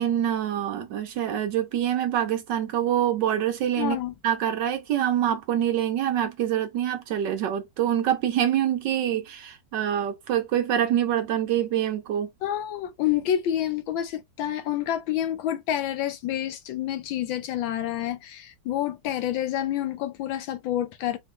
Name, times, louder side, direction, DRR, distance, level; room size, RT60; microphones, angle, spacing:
voice 1, 0.0-4.0 4.2-12.3, right 10 dB, 70° right, 1.1 m, -25 dB
voice 2, 3.8-4.1 12.4-21.2, left 11 dB, 75° left, 1.3 m, -28 dB
4.3 x 2.3 x 3.6 m
omnidirectional pair, 2.3 m